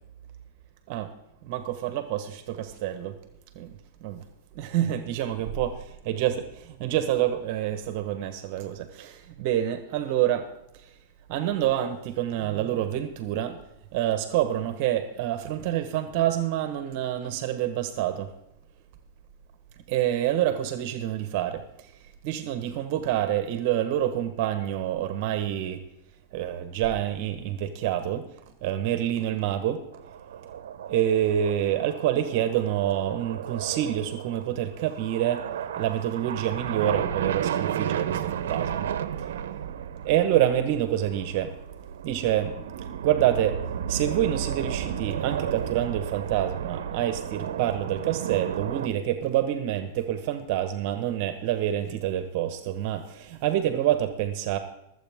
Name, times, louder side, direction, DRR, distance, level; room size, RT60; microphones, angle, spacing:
voice 1, 1.4-3.2 3.5-3.7 4.0-4.2 4.5-5.7 6.1-6.3 6.7-10.5 10.8-10.9 11.3-13.6 13.9-18.3 19.9-21.9 22.2-25.8 26.3-28.2 28.6-29.8 30.9-35.4 35.8-38.9 39.2-39.3 40.0-41.6 42.0-42.7 43.0-43.6 43.9-54.6, right 11 dB, 50° right, 9 dB, 1.2 m, -27 dB
sound 1, 29.9-48.9, right 9 dB, 85° right, 0.8 m, -33 dB
23.5 x 8.1 x 3.6 m, 0.88 s
supercardioid pair, 150°, 0 cm